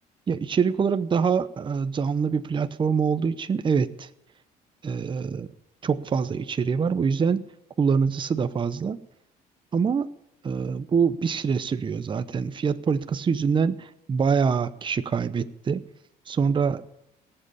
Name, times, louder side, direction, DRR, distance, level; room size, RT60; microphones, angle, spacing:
voice 1, 0.3-4.1 4.8-5.5 5.8-7.4 7.8-9.0 9.7-10.1 10.4-15.8 16.3-16.8, right 6 dB, 30° right, 12 dB, 0.7 m, -25 dB
18.5 x 7.8 x 8.4 m, 0.80 s
cardioid pair, 110°, 17 cm